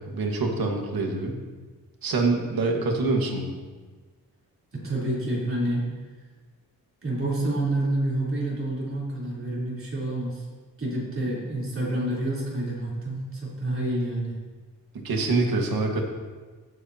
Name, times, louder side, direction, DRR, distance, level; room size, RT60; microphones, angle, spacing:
voice 1, 0.1-1.4 2.0-3.5 15.0-16.0, right 3 dB, 80° right, 1 dB, 1.7 m, -25 dB
voice 2, 4.7-5.9 7.0-10.4 10.8-14.4, right 1 dB, 35° right, -6 dB, 3.6 m, -28 dB
16.0 x 8.1 x 2.9 m, 1.4 s
wide cardioid pair, 155°, 35 cm